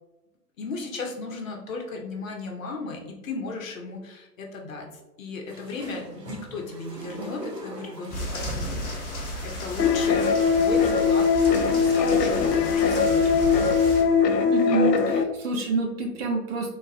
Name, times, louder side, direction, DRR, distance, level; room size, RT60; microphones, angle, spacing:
voice 1, 0.6-4.9 5.2-9.0 9.4-10.3 10.5-11.3 11.6-13.8, left 3 dB, 55° left, 1 dB, 1.1 m, -35 dB
sound 1, 5.5-8.5 9.4-9.5 10.5-11.0 11.6-11.7 12.1-12.5 13.2-13.3, right 1 dB, 80° right, 1.1 m, -41 dB
sound 2, 8.1-14.0, equal, 30° left, 1.4 m, -33 dB
sound 3, 9.8-15.2, left 5 dB, 85° left, 0.6 m, -21 dB
voice 2, 14.5-16.8, right 3 dB, 40° right, 2 dB, 0.9 m, -27 dB
3.9 x 2.5 x 4.1 m, 1.0 s
figure-of-eight pair, 115°, 48 cm